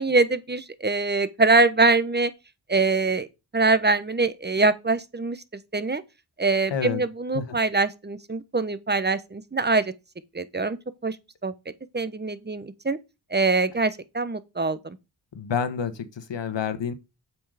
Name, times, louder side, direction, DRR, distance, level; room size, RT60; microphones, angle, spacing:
voice 1, 0.0-2.3 2.7-3.3 3.5-5.4 5.7-6.0 6.4-9.9 10.3-10.8 11.0-11.2 11.4-11.5 11.9-13.0 13.3-15.0, right 3 dB, 25° right, 1.1 m, -23 dB
voice 2, 6.7-7.0 7.3-7.4 15.3-16.9, left 7 dB, 75° left, 1.5 m, -28 dB
7.8 x 5.9 x 5.0 m
cardioid pair, 60°, 44 cm